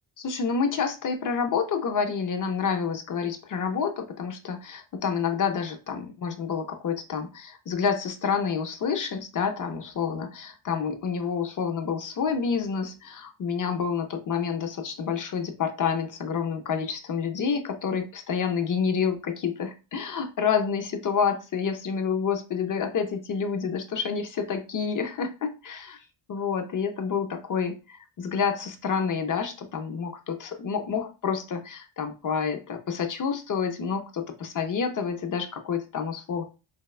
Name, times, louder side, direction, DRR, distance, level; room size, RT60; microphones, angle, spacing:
voice 1, 0.2-26.0 26.3-36.4, left 6 dB, 40° left, 6 dB, 0.5 m, -28 dB
4.1 x 2.1 x 2.3 m, 0.32 s
cardioid pair, 125°, 49 cm